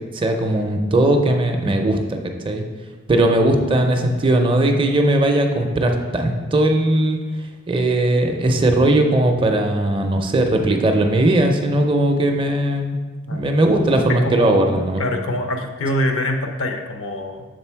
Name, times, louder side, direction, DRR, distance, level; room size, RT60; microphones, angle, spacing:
voice 1, 0.0-2.6 3.1-7.2 7.7-13.0 13.3-15.0, right 1 dB, 25° right, 4 dB, 0.5 m, -18 dB
voice 2, 14.1-17.5, left 1 dB, 65° left, 4 dB, 0.7 m, -25 dB
6.7 x 3.8 x 4.5 m, 1.4 s
head